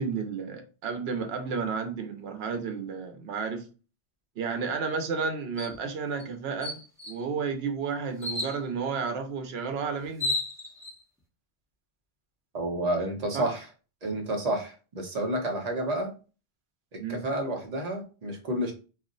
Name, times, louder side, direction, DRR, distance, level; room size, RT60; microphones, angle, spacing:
voice 1, 0.0-3.7 4.4-6.8 7.1-10.4 13.3-13.5 17.0-17.2, right 5 dB, 75° right, 0.8 m, -32 dB
sound 1, 5.6-5.8 6.2-6.3 6.6-7.2 8.2-8.6 9.7-9.8 10.0-10.9, left 2 dB, 5° right, 0.7 m, -32 dB
voice 2, 12.5-13.7 14.0-16.1 16.9-18.7, right 1 dB, 45° right, 0.7 m, -30 dB
2.4 x 2.0 x 3.8 m
omnidirectional pair, 1.1 m